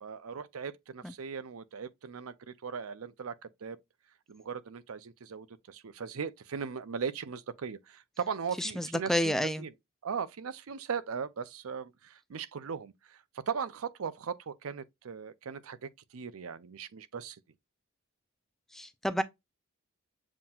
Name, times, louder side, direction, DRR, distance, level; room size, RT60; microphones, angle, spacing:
voice 1, 0.0-3.8 4.3-9.7 10.0-17.4, right 6 dB, 75° right, 0.5 m, -38 dB
voice 2, 8.6-9.7 18.7-19.2, equal, ahead, 0.3 m, -30 dB
7.3 x 2.8 x 2.4 m
head